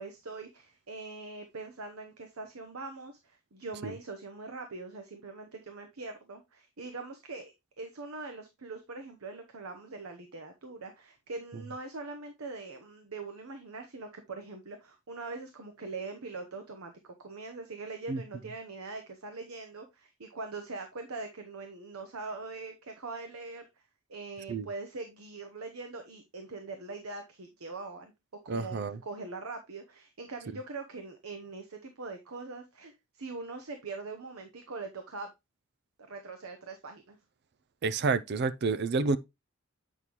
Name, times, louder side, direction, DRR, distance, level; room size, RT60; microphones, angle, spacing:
voice 1, 0.0-23.7 24.1-28.1 28.4-35.3 36.1-37.2, right 3 dB, 85° right, 0.9 m, -42 dB
voice 2, 28.5-29.0 37.8-39.2, right 4 dB, 50° right, 0.4 m, -29 dB
8.2 x 5.5 x 3.0 m
head